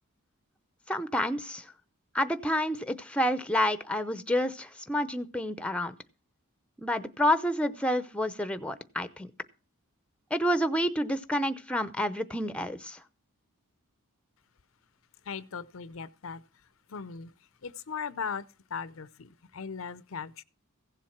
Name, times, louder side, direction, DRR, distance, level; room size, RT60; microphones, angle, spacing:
voice 1, 0.9-1.7 2.1-5.9 6.8-9.3 10.3-13.0, equal, 5° left, 0.7 m, -29 dB
voice 2, 15.2-16.4 16.9-17.3 17.6-20.4, left 6 dB, 65° left, 0.6 m, -38 dB
16.0 x 7.5 x 5.9 m
head